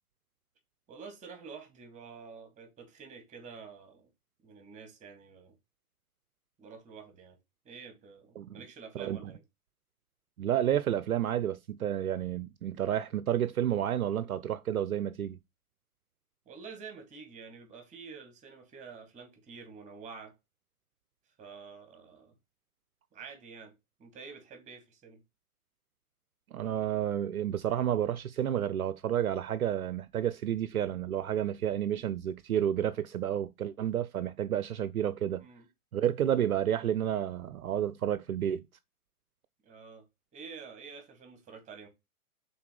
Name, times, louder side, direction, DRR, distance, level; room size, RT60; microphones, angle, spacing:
voice 1, 0.9-4.1 4.4-5.5 6.6-7.4 7.7-9.4 16.5-20.4 21.4-22.3 23.1-23.7 24.0-25.2 35.3-35.7 39.6-40.0 40.3-41.9, right 5 dB, 15° right, 1.8 m, -48 dB
voice 2, 8.9-9.3 10.4-15.4 26.5-35.5 35.9-38.7, right 10 dB, 65° right, 0.6 m, -30 dB
5.8 x 4.1 x 4.9 m
figure-of-eight pair, 115°, 45 cm